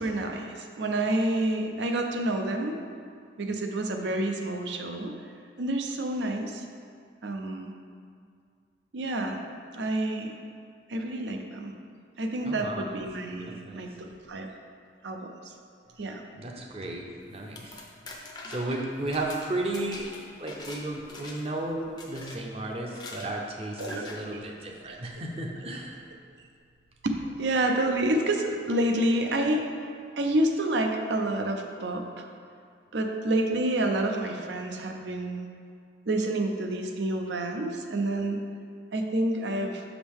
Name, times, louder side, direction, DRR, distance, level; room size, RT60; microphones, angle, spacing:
voice 1, 0.0-2.8 3.4-5.1 5.6-6.6 7.2-7.7 8.9-9.4 9.7-10.4 10.9-11.7 12.2-14.5 15.0-15.5 16.0-16.2 23.8-24.4 24.9-25.0 27.0-29.7 30.2-32.3 32.9-35.5 36.1-38.4 38.9-39.8, right 1 dB, 80° right, 4 dB, 0.6 m, -28 dB
voice 2, 12.4-12.8 13.6-13.9 16.3-17.9 18.2-20.1 20.4-26.0, right 2 dB, 35° right, 1 dB, 0.6 m, -34 dB
sound 1, 17.3-20.8 21.1-21.6 22.0-22.4 22.9-23.3 23.8-24.2, left 2 dB, 25° left, 0.6 m, -43 dB
6.2 x 5.0 x 3.5 m, 2.2 s
head